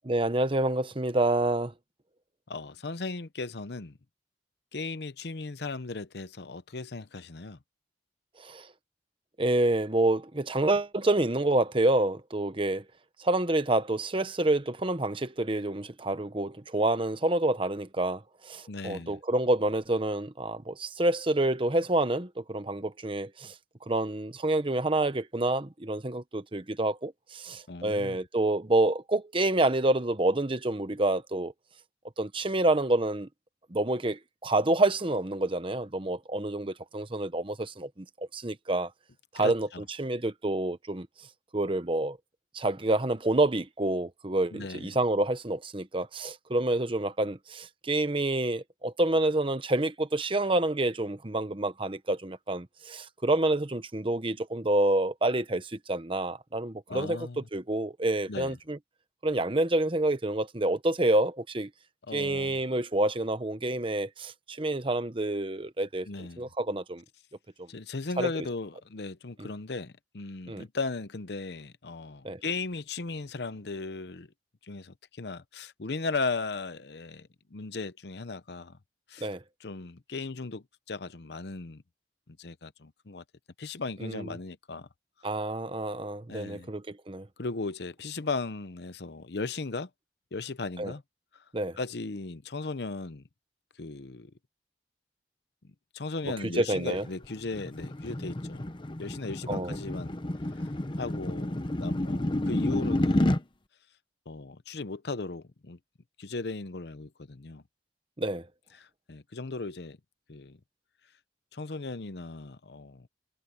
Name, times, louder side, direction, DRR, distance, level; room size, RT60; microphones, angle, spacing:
voice 1, 0.0-1.7 8.4-8.7 9.4-12.8 13.2-23.5 23.9-31.5 32.2-33.3 33.7-38.9 39.3-39.7 40.0-41.1 41.5-42.2 42.5-58.8 59.2-61.7 62.1-67.0 68.2-68.3 70.5-70.6 72.2-72.4 79.2-79.4 84.0-84.3 85.2-87.3 90.8-90.9 91.5-91.8 96.4-97.0 99.5-99.7 108.2-108.5, right 2 dB, 30° right, 1.1 m, -28 dB
voice 2, 2.5-4.0 4.7-7.6 18.7-19.2 27.7-28.2 39.4-39.8 44.5-45.0 56.9-57.4 58.3-58.6 62.1-62.6 66.1-66.5 67.7-74.3 74.6-78.8 79.1-79.3 79.6-81.8 82.3-83.2 83.6-84.9 86.3-86.7 87.4-89.9 90.3-91.0 91.8-93.2 93.8-94.3 95.6-98.7 99.0-100.2 100.5-100.7 101.0-103.4 104.3-105.8 106.2-107.6 108.7-110.0 110.3-110.6 111.5-113.1, left 3 dB, 65° left, 0.8 m, -37 dB
sound 1, 96.9-103.4, left 1 dB, 30° left, 0.9 m, -30 dB
head